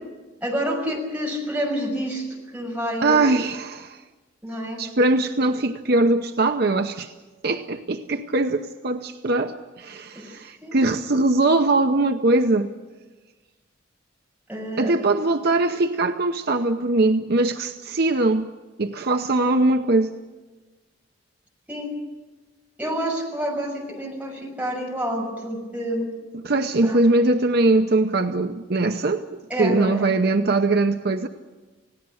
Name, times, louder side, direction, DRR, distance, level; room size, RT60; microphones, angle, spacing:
voice 1, 0.4-2.3 2.5-3.3 4.4-4.8 10.1-10.3 10.6-10.9 14.5-14.9 21.7-21.9 22.8-26.1 26.8-27.0 29.5-30.2, equal, 10° right, -1 dB, 6.1 m, -28 dB
voice 2, 3.0-4.0 4.8-7.1 7.4-12.7 14.8-18.5 18.8-20.1 26.4-31.3, right 2 dB, 55° right, 6 dB, 0.8 m, -21 dB
28.5 x 17.5 x 6.4 m, 1.2 s
head